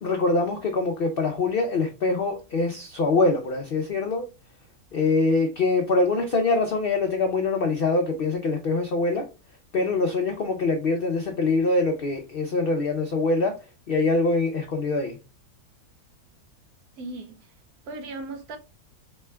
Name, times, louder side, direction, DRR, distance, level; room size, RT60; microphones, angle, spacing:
voice 1, 0.0-4.3 4.9-9.3 9.7-13.5 13.9-15.2, left 3 dB, 75° left, 0.5 m, -24 dB
voice 2, 17.0-17.6 17.8-18.6, right 2 dB, 75° right, 1.2 m, -37 dB
4.3 x 2.2 x 3.2 m
omnidirectional pair, 1.7 m